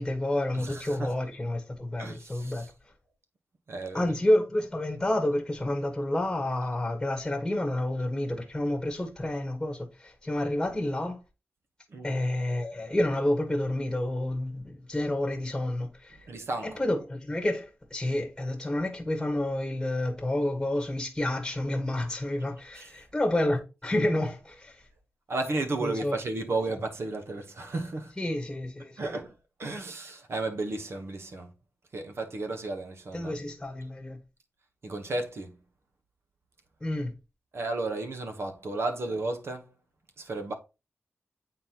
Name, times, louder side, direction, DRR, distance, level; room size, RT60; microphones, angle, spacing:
voice 1, 0.0-2.6 3.9-11.2 12.0-16.2 16.6-24.8 25.8-26.2 28.2-29.1 33.1-34.2 36.8-37.1, left 1 dB, 10° left, 1.4 m, -29 dB
voice 2, 0.5-1.1 2.0-2.7 3.7-4.2 11.9-12.1 16.3-16.7 22.8-22.9 25.3-28.1 28.9-29.3 29.6-31.5 31.9-33.3 34.8-35.6 37.5-39.7 40.2-40.5, right 2 dB, 60° right, 1.0 m, -33 dB
8.6 x 4.0 x 2.9 m
wide cardioid pair, 85°, 5 cm